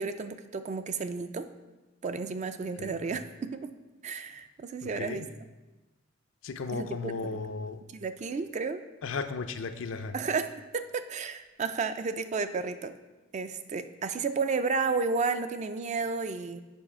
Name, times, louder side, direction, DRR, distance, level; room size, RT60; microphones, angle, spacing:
voice 1, 0.0-1.5 2.0-3.7 4.0-5.2 6.7-7.4 7.9-8.8 10.1-10.5 10.7-12.9 13.3-16.6, right 4 dB, 35° right, 10 dB, 0.3 m, -32 dB
voice 2, 4.8-5.3 6.4-7.8 9.0-10.1, left 4 dB, 75° left, 9 dB, 0.5 m, -35 dB
7.2 x 5.4 x 4.3 m, 1.1 s
head